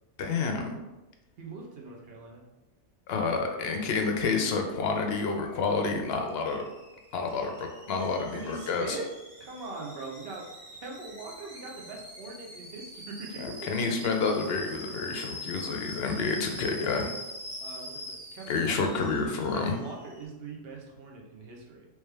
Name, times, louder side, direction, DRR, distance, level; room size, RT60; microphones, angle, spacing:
voice 1, 0.2-0.8 3.1-6.6 7.1-9.0 13.4-17.1 18.5-19.8, left 4 dB, 65° left, 3 dB, 0.6 m, -29 dB
voice 2, 1.4-2.4 8.3-9.1 9.4-10.5 10.8-13.4 17.6-18.9 19.5-21.9, right 3 dB, 55° right, -1 dB, 0.9 m, -41 dB
Alarm / Boiling, 5.4-20.2, left 1 dB, 40° right, 1.3 m, -44 dB
3.3 x 3.1 x 3.2 m, 1.0 s
omnidirectional pair, 1.3 m